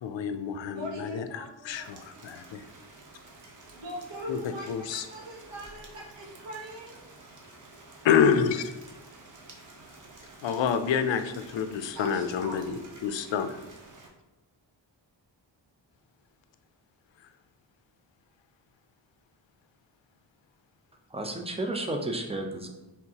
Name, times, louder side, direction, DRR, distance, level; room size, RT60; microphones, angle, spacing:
voice 1, 0.0-2.6 4.3-4.4 4.7-5.1 8.0-8.7 10.4-13.6, left 7 dB, 70° left, 10 dB, 0.5 m, -28 dB
voice 2, 0.7-2.2 3.7-7.0 11.9-12.7, equal, 65° right, -1 dB, 1.2 m, -41 dB
Rain, 1.7-14.1, right 2 dB, 40° right, 0.8 m, -51 dB
voice 3, 21.1-22.7, right 2 dB, 15° right, 3 dB, 0.6 m, -32 dB
4.5 x 3.6 x 2.8 m, 1.0 s
wide cardioid pair, 80°, 46 cm